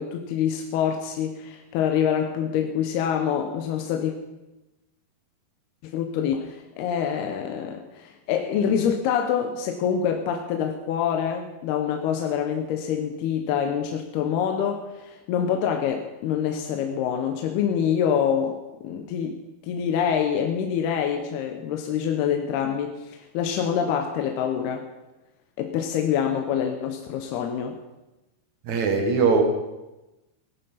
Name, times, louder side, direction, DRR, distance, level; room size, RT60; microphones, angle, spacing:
voice 1, 0.0-4.1 5.8-24.9 25.6-27.8, left 8 dB, 75° left, 5 dB, 2.8 m, -26 dB
voice 2, 28.6-29.4, right 5 dB, 55° right, 5 dB, 2.5 m, -20 dB
17.5 x 12.0 x 5.7 m, 1.0 s
omnidirectional pair, 4.8 m